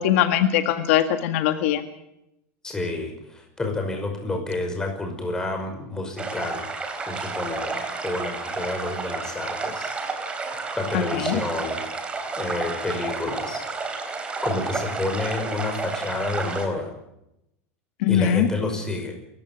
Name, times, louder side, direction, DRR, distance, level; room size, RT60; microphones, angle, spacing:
voice 1, 0.0-1.8 10.9-11.4 18.0-18.5, left 11 dB, 70° left, 7 dB, 1.8 m, -21 dB
voice 2, 2.6-6.7 7.1-9.9 10.8-11.8 12.3-13.6 14.4-16.9 18.1-19.1, left 2 dB, 10° left, 3 dB, 5.7 m, -29 dB
sound 1, 6.2-16.7, right 4 dB, 15° right, 3.7 m, -31 dB
28.0 x 15.5 x 7.5 m, 0.84 s
supercardioid pair, 160°, 7 cm